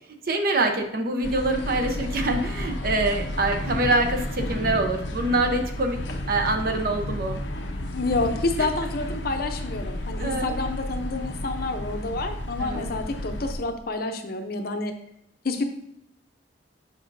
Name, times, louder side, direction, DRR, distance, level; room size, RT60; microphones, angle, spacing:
voice 1, 0.3-6.0 6.3-7.4 10.2-10.6 12.6-12.9, right 2 dB, 55° right, 4 dB, 0.8 m, -25 dB
sound 1, 1.2-13.5, left 1 dB, 90° left, 0.8 m, -32 dB
voice 2, 7.9-14.9 15.4-15.6, left 3 dB, 55° left, 5 dB, 0.7 m, -28 dB
7.5 x 5.4 x 2.7 m, 0.77 s
head